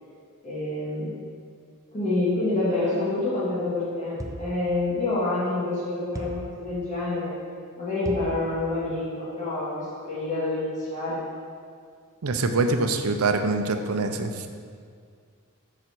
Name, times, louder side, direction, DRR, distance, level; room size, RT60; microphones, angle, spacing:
voice 1, 0.4-1.1 1.9-7.3 7.8-11.2, left 2 dB, 35° left, -9 dB, 2.3 m, -27 dB
sound 1, 4.2-4.6 6.1-6.6 8.0-8.4, right 1 dB, 15° right, 0.5 m, -35 dB
voice 2, 12.2-14.5, right 3 dB, 80° right, 6 dB, 0.6 m, -24 dB
7.0 x 4.9 x 6.1 m, 2.1 s
head